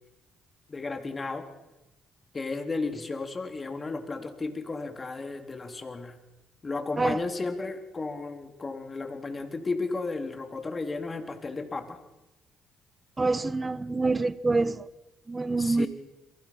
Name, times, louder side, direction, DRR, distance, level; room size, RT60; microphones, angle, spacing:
voice 1, 0.7-1.5 2.3-6.2 6.6-12.0 15.6-15.9, left 3 dB, 35° left, 3.5 m, -33 dB
voice 2, 13.2-14.9 15.3-15.9, right 3 dB, 25° right, 1.3 m, -26 dB
29.5 x 23.5 x 5.9 m
supercardioid pair, 55°, 0 cm